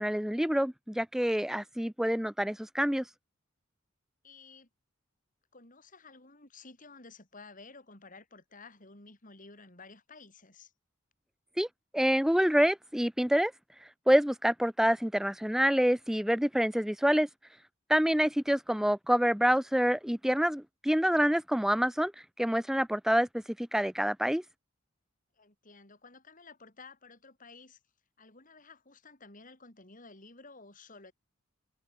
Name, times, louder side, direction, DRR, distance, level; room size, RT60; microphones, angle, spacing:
voice 1, 0.0-3.0 11.6-11.7 11.9-13.5 14.1-17.3 17.9-22.1 22.4-24.4, equal, ahead, 0.5 m, -27 dB
voice 2, 4.2-4.7 5.5-10.7 25.3-27.8 28.2-31.1, left 3 dB, 40° left, 4.2 m, -53 dB
head